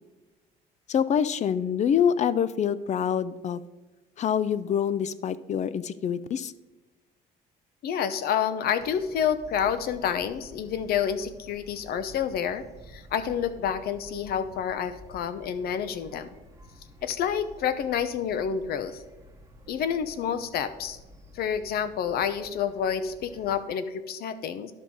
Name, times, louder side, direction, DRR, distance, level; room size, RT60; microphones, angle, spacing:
voice 1, 0.9-3.6 4.2-6.5, left 8 dB, 45° left, 17 dB, 0.5 m, -26 dB
voice 2, 7.8-16.3 17.0-19.0 19.7-21.0 21.3-24.7, left 8 dB, 65° left, 12 dB, 0.8 m, -29 dB
sound 1, 8.8-23.7, equal, 15° right, 1.0 m, -51 dB
11.5 x 5.5 x 4.7 m, 1.1 s
cardioid pair, 110°, 17 cm